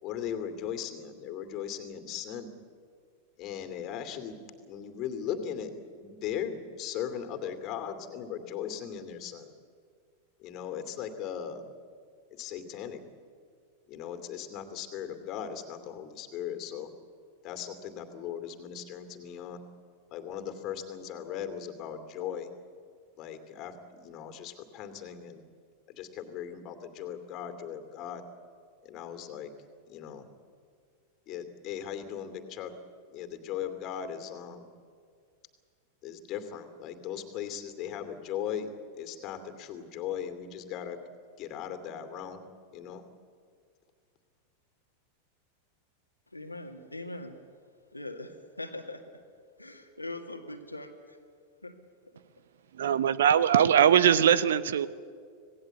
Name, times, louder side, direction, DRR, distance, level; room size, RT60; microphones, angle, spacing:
voice 1, 0.0-2.5 3.4-9.5 10.4-11.7 12.3-13.0 13.9-16.9 17.4-19.6 20.1-22.5 23.2-25.4 25.9-28.2 28.8-29.5 29.9-30.3 31.3-32.7 33.1-34.7 36.0-41.0 41.4-42.4 42.7-43.0, left 9 dB, 35° left, 8 dB, 2.6 m, -38 dB
voice 2, 46.3-47.4 47.9-49.0 49.6-51.2 51.6-51.7, left 2 dB, 85° left, 4 dB, 2.2 m, -41 dB
voice 3, 52.8-54.9, right 9 dB, 60° right, 17 dB, 0.8 m, -21 dB
26.5 x 18.0 x 8.2 m, 2.1 s
figure-of-eight pair, 90°, 0 cm